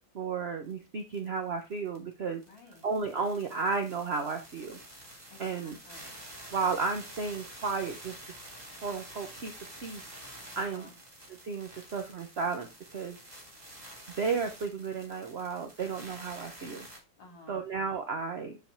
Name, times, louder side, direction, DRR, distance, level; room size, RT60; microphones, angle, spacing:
voice 1, 0.1-2.4 2.8-4.8 5.4-5.8 6.5-8.2 8.8-9.5 9.8-10.0 10.5-10.9 11.4-13.2 14.2-16.9 17.5-18.6, right 4 dB, 55° right, 5 dB, 0.7 m, -33 dB
sound 1, 0.7-0.8 1.0-17.0, right 1 dB, 20° right, 3.3 m, -49 dB
voice 2, 2.5-2.8 5.3-6.2 10.5-10.9 17.2-17.6, left 2 dB, 65° left, 5 dB, 2.8 m, -54 dB
7.6 x 4.7 x 4.4 m, 0.28 s
omnidirectional pair, 2.2 m